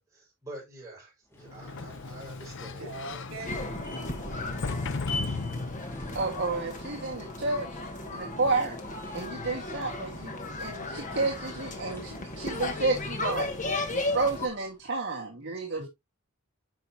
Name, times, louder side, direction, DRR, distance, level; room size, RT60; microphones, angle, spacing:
voice 1, 0.0-2.8, right 1 dB, 15° right, 5.1 m, -46 dB
sound 1, 1.3-14.8, left 2 dB, 10° left, 2.0 m, -46 dB
Sliding door, 1.4-6.2, left 3 dB, 55° left, 0.7 m, -36 dB
voice 2, 2.8-4.6 15.8-15.9, right 2 dB, 70° right, 3.9 m, -43 dB
sound 2, 3.5-14.5, left 2 dB, 35° left, 1.5 m, -35 dB
voice 3, 6.1-7.7 8.1-8.8 9.1-13.5 13.9-15.9, right 3 dB, 55° right, 1.7 m, -31 dB
10.5 x 5.7 x 2.8 m
head